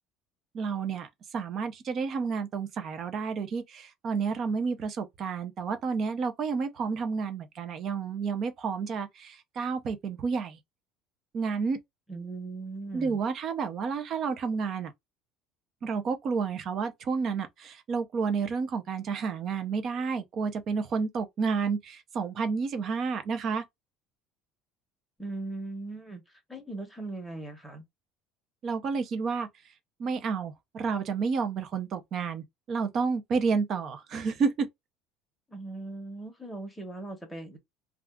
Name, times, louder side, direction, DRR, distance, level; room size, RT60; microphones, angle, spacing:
voice 1, 0.5-10.6 11.3-11.8 12.9-14.9 15.8-23.6 28.6-29.5 30.0-34.7, right 5 dB, 35° right, 0.5 m, -30 dB
voice 2, 12.1-13.2 25.2-27.8 35.5-37.6, right 2 dB, 5° left, 0.9 m, -39 dB
2.4 x 2.3 x 3.4 m
cardioid pair, 165°, 0 cm